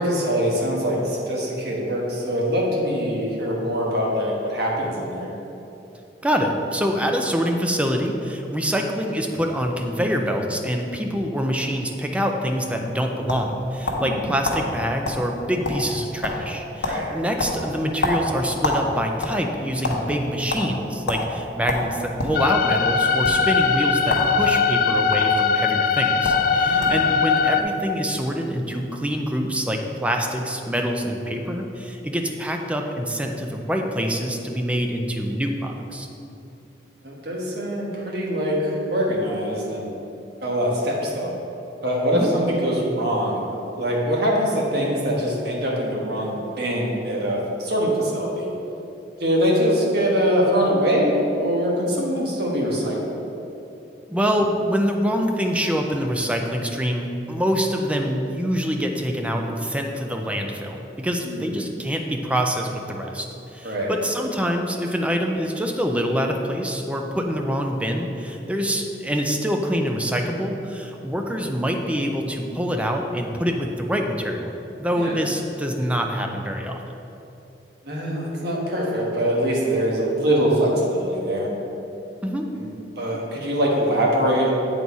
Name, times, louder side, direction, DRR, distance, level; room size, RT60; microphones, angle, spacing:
voice 1, 0.0-5.3 14.0-14.3 16.8-17.1 26.6-27.0 37.0-39.9 40.4-41.3 41.8-43.4 43.8-48.5 49.2-53.2 61.2-61.7 63.6-63.9 75.0-75.2 77.8-81.5 82.5-82.7 83.0-84.5, equal, 65° right, -3 dB, 1.3 m, -23 dB
voice 2, 6.2-36.1 42.1-42.3 54.1-63.3 63.5-74.5 74.8-76.8 82.2-82.5, equal, 5° right, 3 dB, 0.4 m, -25 dB
sound 1, 13.3-14.1 14.4-14.6 15.0-15.2 15.5-16.5 16.8-17.0 17.4-18.8 19.1-20.0 20.5-20.6 21.1-21.2 21.7-22.4 23.1-23.3 24.0-24.3 24.6-25.2 25.9-26.0 26.2-26.4 26.8-27.1, left 2 dB, 85° left, 1.1 m, -26 dB
sound 2, 22.3-27.6, left 5 dB, 55° left, 0.4 m, -20 dB
7.7 x 4.1 x 4.7 m, 2.9 s
head